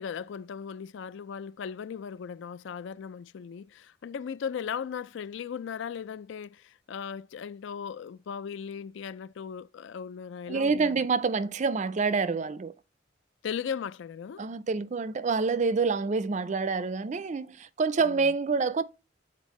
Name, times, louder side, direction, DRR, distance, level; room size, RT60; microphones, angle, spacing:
voice 1, 0.0-11.0 13.4-14.4 18.0-18.3, left 7 dB, 65° left, 0.3 m, -37 dB
voice 2, 10.5-12.7 14.4-18.8, right 4 dB, 35° right, 0.4 m, -27 dB
8.1 x 4.2 x 3.1 m
head